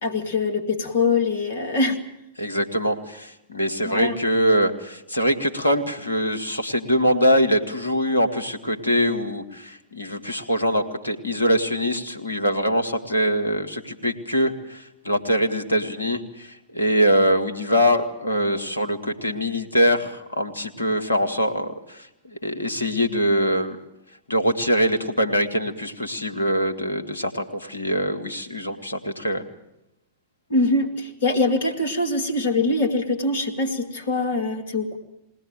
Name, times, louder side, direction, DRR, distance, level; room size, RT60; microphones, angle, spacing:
voice 1, 0.0-2.0 3.9-4.2 30.5-35.0, left 2 dB, 60° left, 4 dB, 2.6 m, -23 dB
voice 2, 2.4-23.8 24.3-29.4, equal, 80° left, 5 dB, 1.7 m, -23 dB
21.5 x 18.0 x 9.1 m, 0.83 s
figure-of-eight pair, 90°, 0 cm